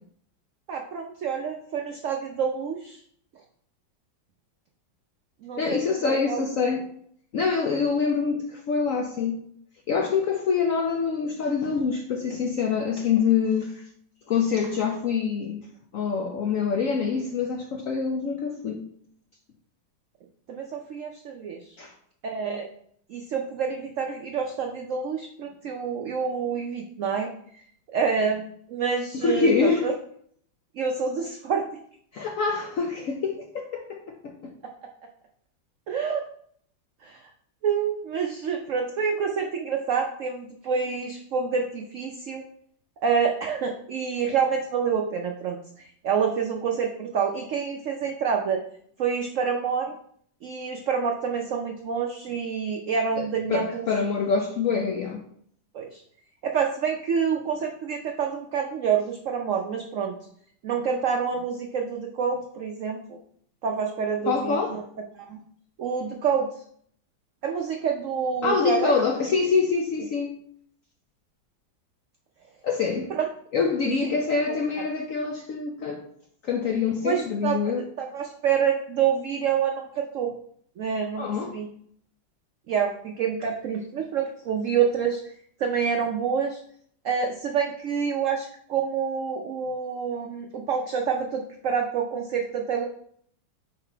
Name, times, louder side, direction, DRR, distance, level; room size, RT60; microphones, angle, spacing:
voice 1, 0.7-3.0 5.4-6.4 20.5-21.8 22.2-22.7 23.1-27.6 27.9-29.9 30.7-31.7 35.9-36.2 37.0-37.2 37.6-42.4 43.0-48.6 49.0-49.9 50.4-53.9 55.7-56.0 56.4-60.1 60.6-63.2 63.6-64.8 65.2-65.4 65.8-66.6 67.4-68.9 73.1-73.3 74.0-74.1 74.5-74.6 77.0-77.7 78.0-80.3 80.8-81.7 82.7-85.3 85.6-86.6 87.0-92.9, right 6 dB, 80° right, 3 dB, 0.7 m, -27 dB
voice 2, 5.6-6.8 7.3-9.4 9.9-13.8 14.3-15.7 15.9-18.8 21.8-21.9 29.2-29.9 32.1-34.5 53.2-55.2 64.3-64.8 68.4-70.4 72.6-73.1 73.5-76.0 76.4-77.8 81.2-81.6, left 5 dB, 75° left, 3 dB, 0.7 m, -25 dB
5.8 x 4.1 x 4.4 m, 0.64 s
omnidirectional pair, 2.0 m